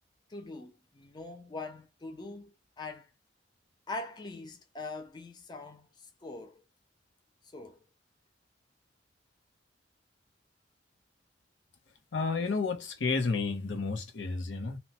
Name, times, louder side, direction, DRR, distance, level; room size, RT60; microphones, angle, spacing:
voice 1, 0.3-3.1 3.9-6.6 7.5-7.8, left 3 dB, 25° left, 0.4 m, -43 dB
voice 2, 12.1-14.8, left 4 dB, 75° left, 0.8 m, -31 dB
2.9 x 2.1 x 2.8 m
head